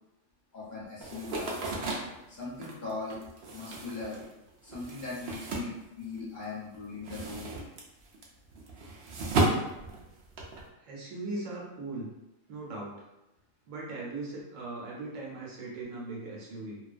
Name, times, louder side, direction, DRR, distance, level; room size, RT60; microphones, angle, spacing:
voice 1, 0.5-1.6 2.3-3.2 3.5-4.2 4.6-7.5, left 3 dB, 45° left, -8 dB, 0.8 m, -39 dB
sound 1, 1.0-6.4 6.7-10.6, right 2 dB, 65° right, 0.7 m, -34 dB
voice 2, 10.8-12.1 12.5-13.0 13.7-16.8, right 2 dB, 85° right, -4 dB, 1.1 m, -39 dB
2.4 x 2.2 x 2.4 m, 0.93 s
omnidirectional pair, 1.3 m